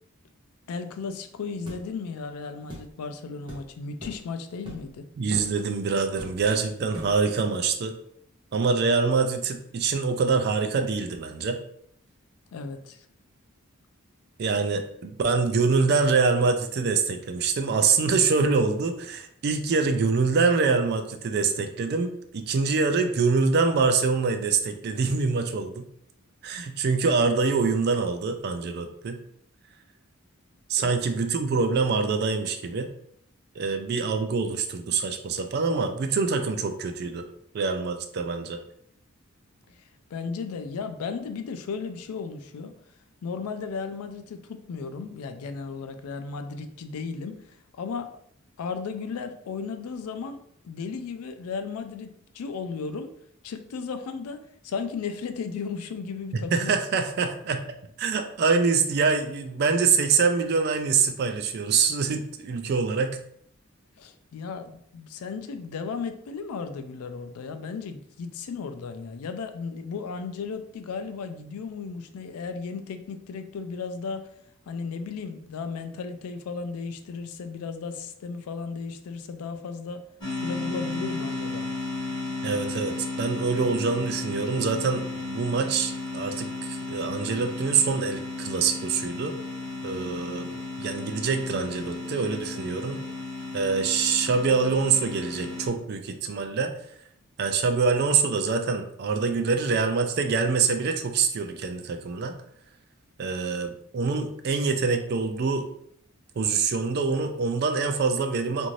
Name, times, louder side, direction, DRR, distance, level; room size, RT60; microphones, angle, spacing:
voice 1, 0.7-5.1 12.5-13.1 30.8-30.9 33.6-33.7 39.7-42.8 43.2-48.1 48.6-50.4 50.6-53.1 53.4-56.7 64.0-74.3 74.7-80.0 80.3-81.7, left 5 dB, 85° left, 8 dB, 0.4 m, -35 dB
sound 1, 1.7-1.8 2.7-2.9 3.5-3.6 4.0-4.2 4.6-4.9 5.3-5.5 6.2-6.5 6.9-7.2, equal, 20° right, 0.7 m, -39 dB
voice 2, 5.2-7.9 8.5-11.6 14.4-25.8 26.4-29.2 30.7-32.9 33.6-37.2 37.5-38.6 56.5-57.6 58.0-63.2 82.4-89.3 89.8-93.0 93.5-96.7 97.4-102.3 103.2-105.7 106.4-108.7, right 4 dB, 45° right, 6 dB, 0.3 m, -25 dB
sound 2, 80.2-95.7, left 3 dB, 20° left, 1.3 m, -34 dB
2.6 x 2.5 x 3.0 m, 0.68 s
head